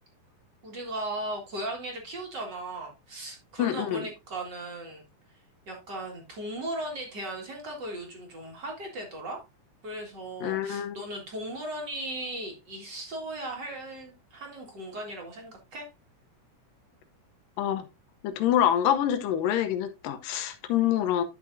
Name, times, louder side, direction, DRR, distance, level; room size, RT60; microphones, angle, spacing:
voice 1, 0.6-5.0 5.7-9.4 9.8-15.9, right 1 dB, 40° right, 2.1 m, -37 dB
voice 2, 3.6-4.1 10.4-11.0 17.6-17.9 18.2-21.2, left 11 dB, 90° left, 2.6 m, -26 dB
11.0 x 5.7 x 2.6 m
omnidirectional pair, 3.8 m